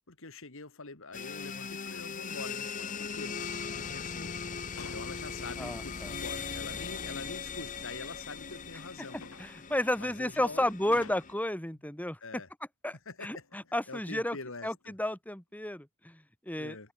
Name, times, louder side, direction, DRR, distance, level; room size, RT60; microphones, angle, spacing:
voice 1, 0.1-3.4 3.7-4.5 4.9-9.2 10.0-11.0 12.2-12.5 13.1-13.5 13.9-14.9 16.6-16.9, left 3 dB, 65° left, 2.5 m, -45 dB
sound 1, 1.1-11.3, left 6 dB, 35° left, 0.9 m, -39 dB
sound 2, 4.5-5.2 6.4-6.5 7.7-11.5 13.3-13.8 14.2-15.0 15.5-15.7, left 4 dB, 80° left, 6.0 m, -53 dB
voice 2, 5.6-6.1 9.4-12.2 12.8-14.4 14.6-16.9, left 1 dB, 5° left, 2.2 m, -32 dB
head